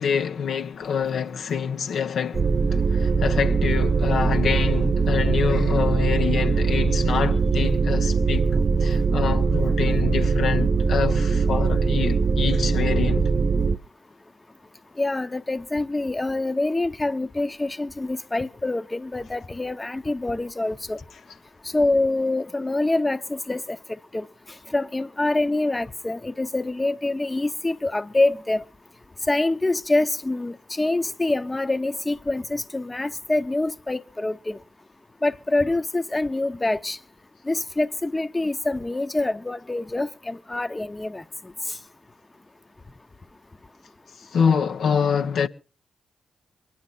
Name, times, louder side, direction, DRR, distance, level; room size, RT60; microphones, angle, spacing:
voice 1, 0.0-13.3 44.2-45.5, left 7 dB, 75° left, 1.0 m, -26 dB
sound 1, 2.3-13.8, right 4 dB, 50° right, 0.8 m, -21 dB
voice 2, 15.0-21.0 21.7-23.8 24.1-24.3 24.7-28.6 29.3-34.6 35.2-37.0 37.5-41.2, left 2 dB, 25° left, 1.0 m, -25 dB
22.5 x 11.0 x 4.1 m
supercardioid pair, 55°, 0 cm